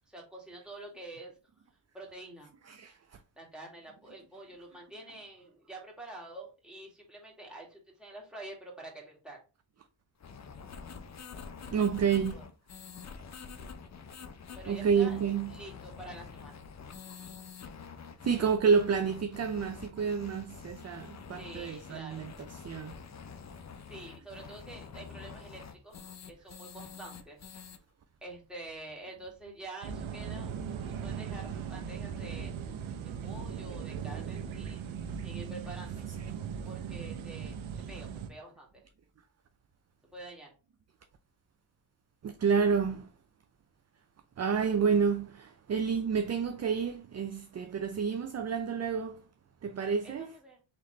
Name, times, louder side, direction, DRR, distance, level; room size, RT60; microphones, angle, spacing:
voice 1, 0.1-1.3 1.9-2.5 3.4-9.4 12.3-12.4 14.5-15.2 15.5-16.6 21.4-22.3 23.9-26.0 26.3-27.4 28.2-30.5 30.8-32.5 33.0-34.9 35.2-36.0 36.6-37.6 37.9-38.8 40.1-40.5 50.0-50.6, right 2 dB, ahead, 2.1 m, -47 dB
voice 2, 2.7-3.2 11.7-12.4 14.7-15.6 18.2-22.9 36.2-36.3 42.2-43.1 44.4-49.2 49.6-50.3, right 6 dB, 35° right, 0.5 m, -29 dB
sound 1, 10.2-27.8, left 6 dB, 35° left, 0.6 m, -47 dB
sound 2, 29.8-38.3, right 7 dB, 80° right, 0.8 m, -38 dB
4.0 x 3.2 x 3.2 m
cardioid pair, 65°, 47 cm